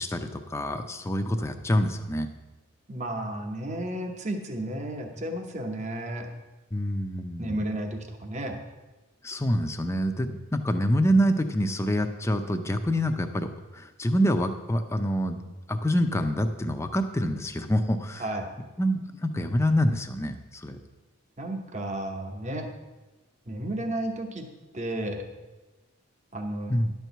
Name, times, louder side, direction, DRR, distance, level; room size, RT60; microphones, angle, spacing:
voice 1, 0.0-2.3 6.7-7.6 9.2-15.4 15.7-18.2 18.8-20.8 26.7-26.9, equal, 15° left, 7 dB, 0.5 m, -26 dB
voice 2, 2.9-6.3 7.4-8.6 18.2-18.5 21.4-22.7 23.5-24.5 24.7-25.2 26.3-26.8, right 1 dB, 35° right, 4 dB, 0.9 m, -32 dB
11.0 x 4.6 x 6.8 m, 1.1 s
head